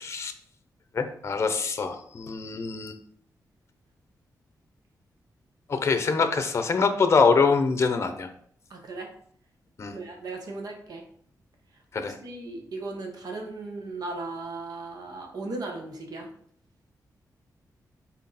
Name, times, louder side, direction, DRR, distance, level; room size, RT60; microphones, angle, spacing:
voice 1, 0.9-3.0 5.7-8.3 9.8-10.0 11.9-12.1, left 4 dB, 40° left, 8 dB, 0.7 m, -24 dB
voice 2, 8.7-9.1 9.8-11.0 12.0-16.3, right 3 dB, 70° right, 3 dB, 1.3 m, -37 dB
6.3 x 4.1 x 4.1 m, 0.63 s
wide cardioid pair, 140°, 7 cm